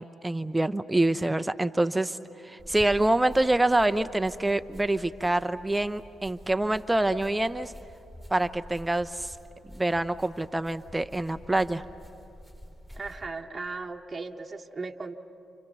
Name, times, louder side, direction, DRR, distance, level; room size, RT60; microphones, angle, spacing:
voice 1, 0.0-2.2 2.4-7.7 8.3-9.3 9.7-11.8, right 2 dB, 15° right, 10 dB, 0.7 m, -26 dB
sound 1, 2.6-13.3, equal, 15° left, 4.5 m, -48 dB
voice 2, 12.9-15.1, right 3 dB, 30° right, 2 dB, 1.2 m, -37 dB
29.0 x 28.0 x 6.9 m, 2.8 s
hypercardioid pair, 45°, 0 cm